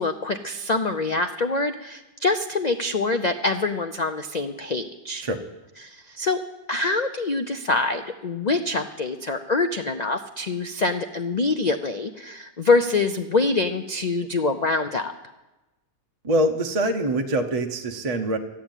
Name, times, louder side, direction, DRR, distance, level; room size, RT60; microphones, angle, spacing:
voice 1, 0.0-5.2 5.8-6.4 6.7-15.1, left 3 dB, 85° left, 7 dB, 0.3 m, -25 dB
voice 2, 16.2-18.4, right 1 dB, 30° right, 5 dB, 0.9 m, -24 dB
12.5 x 9.8 x 8.9 m, 1.1 s
omnidirectional pair, 1.6 m